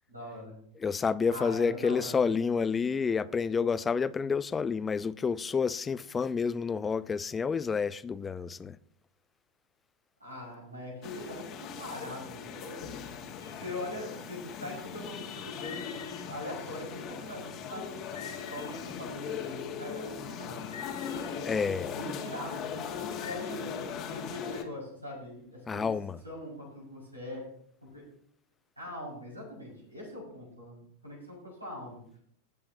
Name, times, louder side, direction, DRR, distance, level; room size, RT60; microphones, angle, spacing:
voice 1, 0.1-0.6 1.3-2.4 10.2-20.6 21.9-22.7 23.2-25.9 26.2-27.4 27.8-28.0 28.8-32.2, left 1 dB, 85° right, 5.7 m, -42 dB
voice 2, 0.8-8.8 21.4-21.9 25.7-26.2, left 5 dB, 15° left, 0.5 m, -29 dB
sound 1, 11.0-24.6, left 7 dB, 35° left, 1.7 m, -39 dB
sound 2, 13.4-13.9 15.5-16.9 18.0-19.1 20.6-21.6 23.1-23.4, left 8 dB, 65° left, 1.4 m, -47 dB
19.0 x 8.5 x 2.8 m
figure-of-eight pair, 90°, 0 cm